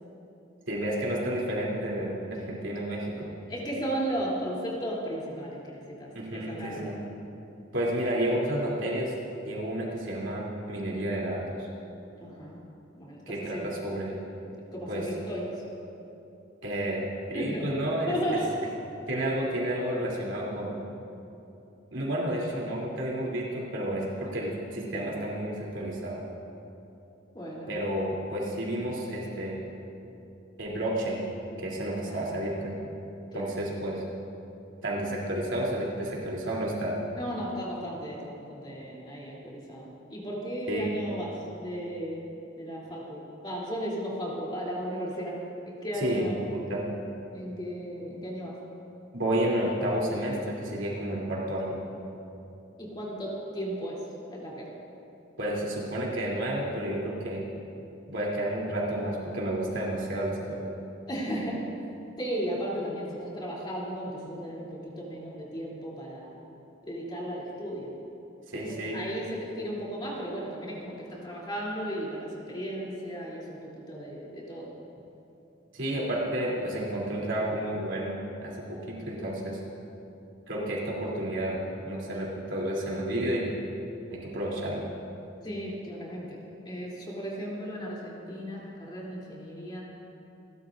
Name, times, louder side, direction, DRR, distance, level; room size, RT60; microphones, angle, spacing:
voice 1, 0.7-2.2 2.5-3.3 6.1-6.9 7.7-9.1 9.4-11.7 13.3-14.2 14.9-15.0 16.6-18.4 19.1-20.8 21.9-26.2 27.7-29.6 30.6-31.2 31.6-32.7 33.3-34.0 34.8-36.9 40.7-40.9 46.0-46.8 49.1-51.8 55.4-57.4 58.1-60.7 68.5-69.0 75.7-79.6 80.5-83.6 84.1-84.9, right 1 dB, 75° right, -4 dB, 3.2 m, -31 dB
voice 2, 3.5-6.1 6.3-6.9 12.2-12.6 13.0-13.2 13.5-13.7 14.7-15.5 17.3-17.7 18.0-18.5 24.9-25.1 27.3-27.7 32.0-32.5 33.3-33.5 37.1-42.2 42.6-45.3 45.7-46.4 47.3-48.5 52.8-54.0 54.3-54.7 61.1-61.7 62.2-66.4 66.8-67.9 68.5-74.7 75.9-76.1 85.4-86.4 86.6-89.8, equal, 25° left, -5 dB, 3.2 m, -35 dB
29.0 x 12.5 x 2.6 m, 2.8 s
head